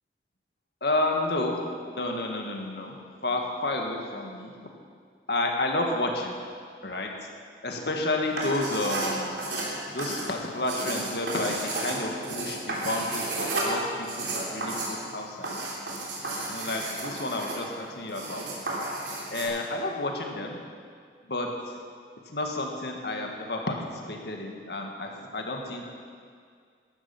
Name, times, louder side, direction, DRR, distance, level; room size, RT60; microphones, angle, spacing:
voice 1, 0.8-1.6 1.9-2.9 3.2-4.5 5.3-6.3 6.8-7.3 7.6-9.4 9.9-15.5 16.4-18.5 19.3-20.6 21.3-21.5 22.3-23.8 24.1-25.9, left 2 dB, 70° left, 2 dB, 1.8 m, -30 dB
sound 1, 8.3-19.5, right 2 dB, 90° right, 3.7 m, -32 dB
14.0 x 12.5 x 6.0 m, 2.1 s
head